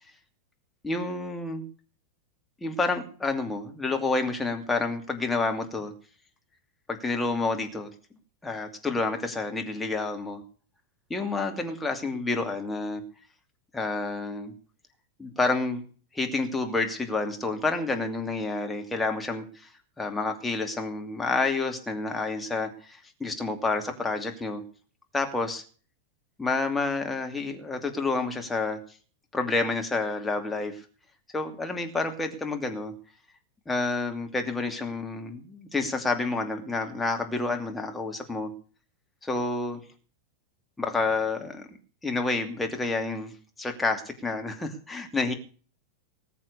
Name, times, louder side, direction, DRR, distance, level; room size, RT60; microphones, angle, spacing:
voice 1, 0.8-1.6 2.6-5.9 6.9-7.9 8.4-10.4 11.1-13.0 13.7-14.5 15.2-15.8 16.1-19.7 20.0-24.6 25.1-25.6 26.4-28.8 29.3-30.8 31.3-32.9 33.7-38.5 39.2-39.8 40.8-41.7 42.0-43.3 43.6-45.3, left 3 dB, 10° left, 3 dB, 2.6 m, -29 dB
20.0 x 7.6 x 6.8 m, 0.41 s
figure-of-eight pair, 90°, 0 cm